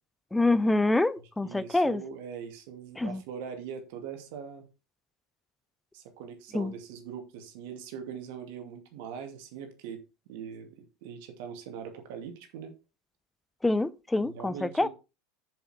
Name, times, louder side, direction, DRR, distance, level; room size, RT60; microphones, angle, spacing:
voice 1, 0.3-2.0 3.0-3.2 6.5-6.7 13.6-14.9, left 2 dB, 10° left, 0.7 m, -26 dB
voice 2, 1.4-4.6 5.9-10.0 10.3-12.7 14.2-14.9, right 7 dB, 60° right, 2.4 m, -41 dB
7.4 x 7.2 x 4.4 m
figure-of-eight pair, 80°, 0 cm